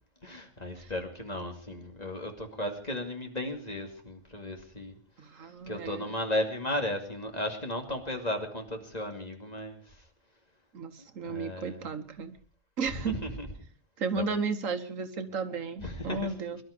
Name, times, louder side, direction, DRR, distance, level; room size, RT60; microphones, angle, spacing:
voice 1, 0.2-5.0 5.7-9.8 11.2-11.8 12.9-13.4 14.1-14.2 15.8-16.2, left 1 dB, 30° left, 4 dB, 2.5 m, -35 dB
voice 2, 5.2-6.1 10.7-12.3 12.8-13.2 14.0-16.6, right 4 dB, 80° right, 10 dB, 1.7 m, -34 dB
23.0 x 11.5 x 5.1 m, 0.41 s
omnidirectional pair, 1.4 m